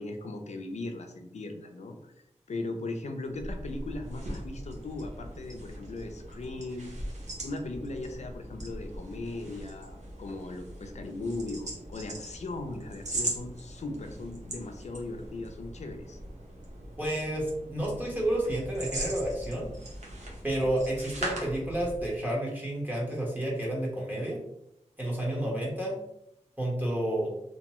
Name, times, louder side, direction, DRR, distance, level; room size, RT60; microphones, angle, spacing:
voice 1, 0.0-2.1 2.5-6.9 7.4-16.2, left 2 dB, 70° left, 5 dB, 0.5 m, -38 dB
sound 1, 3.3-22.2, right 1 dB, 75° right, 0.8 m, -40 dB
voice 2, 17.0-19.7 20.4-24.4 25.0-26.0 26.6-27.3, right 1 dB, 15° right, -4 dB, 1.1 m, -30 dB
2.7 x 2.2 x 2.9 m, 0.79 s
wide cardioid pair, 75°, 12 cm